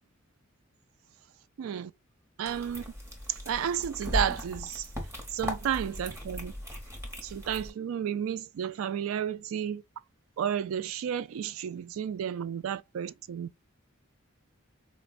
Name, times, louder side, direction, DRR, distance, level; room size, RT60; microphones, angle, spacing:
voice 1, 1.6-1.9 2.4-2.9 3.3-4.9 5.3-6.5 7.2-9.8 10.4-13.5, right 9 dB, 85° right, 0.3 m, -32 dB
sound 1, 2.4-7.7, left 1 dB, 15° right, 0.9 m, -38 dB
4.1 x 2.1 x 2.3 m
head